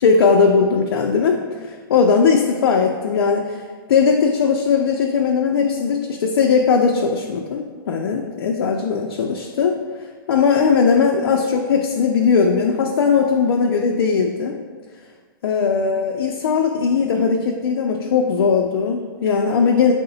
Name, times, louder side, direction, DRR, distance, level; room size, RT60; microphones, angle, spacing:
voice 1, 0.0-3.6 3.9-9.8 10.3-14.6 15.4-19.9, left 5 dB, 75° left, 1 dB, 0.4 m, -18 dB
4.8 x 2.1 x 3.8 m, 1.5 s
hypercardioid pair, 170°, 12 cm